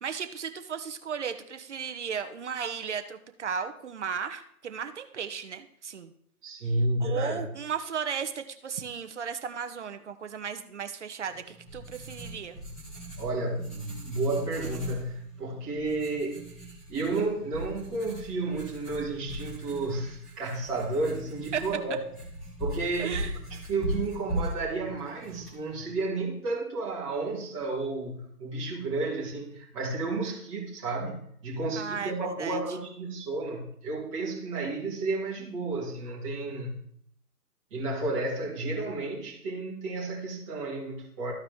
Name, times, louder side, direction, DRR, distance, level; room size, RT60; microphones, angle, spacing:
voice 1, 0.0-6.1 7.0-12.6 21.5-21.6 23.0-23.4 31.8-32.6, right 7 dB, 50° right, 8 dB, 1.0 m, -35 dB
voice 2, 6.4-7.5 13.2-22.0 22.6-23.2 23.7-36.8 37.7-41.3, right 2 dB, 20° right, -5 dB, 2.6 m, -32 dB
Writing, 11.3-26.1, right 1 dB, ahead, 1.3 m, -39 dB
14.0 x 4.8 x 3.6 m, 0.68 s
hypercardioid pair, 155°, 45 cm